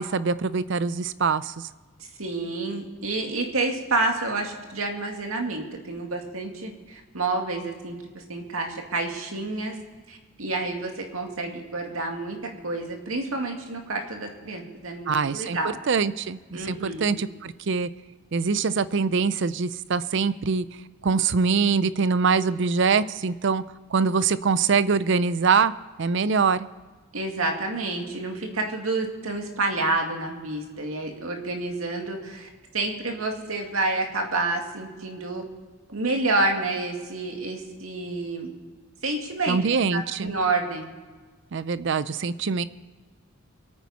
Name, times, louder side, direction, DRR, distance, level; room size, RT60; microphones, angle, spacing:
voice 1, 0.0-1.5 15.1-15.6 15.9-17.9 18.3-20.7 21.0-23.6 23.9-25.7 26.0-26.6 39.5-40.3 41.5-42.6, right 5 dB, 55° right, 16 dB, 0.5 m, -23 dB
voice 2, 2.2-7.9 8.3-9.8 10.1-12.4 12.6-15.8 16.5-17.1 27.1-32.5 32.7-35.4 35.9-38.5 39.0-39.6 39.9-40.9, right 2 dB, 80° right, 3 dB, 2.2 m, -29 dB
24.5 x 9.2 x 4.2 m, 1.4 s
head